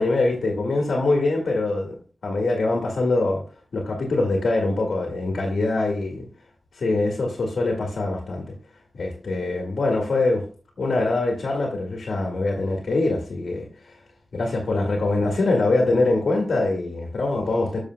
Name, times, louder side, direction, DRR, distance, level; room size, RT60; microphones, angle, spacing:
voice 1, 0.0-2.0 2.2-3.4 3.7-6.3 6.7-8.4 9.0-10.5 10.8-14.0 14.3-17.8, left 2 dB, 80° left, 0 dB, 1.9 m, -23 dB
12.0 x 6.5 x 2.3 m, 0.39 s
wide cardioid pair, 90°, 0 cm